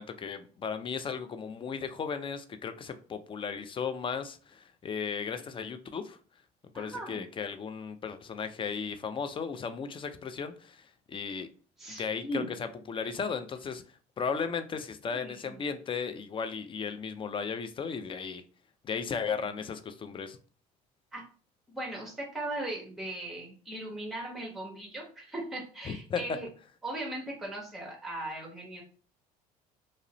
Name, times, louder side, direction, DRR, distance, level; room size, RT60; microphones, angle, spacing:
voice 1, 0.0-6.2 6.7-11.5 11.9-13.8 14.2-18.4 18.8-20.4 25.9-26.2, left 6 dB, 25° left, 0.4 m, -35 dB
voice 2, 6.7-7.2 11.8-12.5 15.0-15.6 21.1-21.3 21.7-26.5 26.8-28.8, right 1 dB, ahead, 0.9 m, -38 dB
2.4 x 2.0 x 2.9 m
hypercardioid pair, 65°, 20 cm